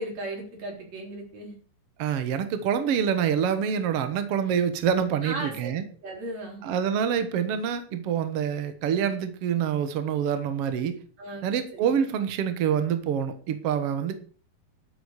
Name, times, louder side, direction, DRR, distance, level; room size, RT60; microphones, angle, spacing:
voice 1, 0.0-1.6 5.2-5.7 6.0-6.6 11.2-11.5 11.7-11.9, right 1 dB, 45° right, 1 dB, 5.0 m, -36 dB
voice 2, 2.0-5.8 6.6-11.0 11.4-14.2, right 8 dB, 75° right, 10 dB, 1.3 m, -26 dB
12.0 x 8.2 x 6.5 m, 0.43 s
omnidirectional pair, 4.5 m